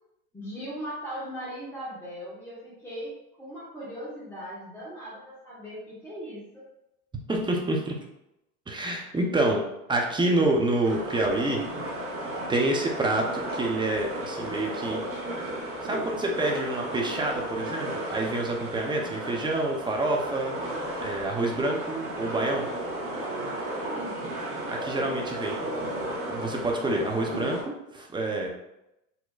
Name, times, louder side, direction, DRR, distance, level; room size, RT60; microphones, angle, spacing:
voice 1, 0.3-6.7 23.9-24.4, equal, 5° left, -9 dB, 1.2 m, -39 dB
voice 2, 7.3-8.0 8.7-9.6 9.9-11.6 12.5-15.0 15.8-20.5 21.0-22.7 24.7-25.6 26.2-28.5, right 2 dB, 10° right, 0 dB, 0.6 m, -27 dB
sound 1, 10.8-27.6, right 1 dB, 35° right, 1.3 m, -34 dB
4.0 x 2.8 x 2.3 m, 0.87 s
hypercardioid pair, 90°, 41 cm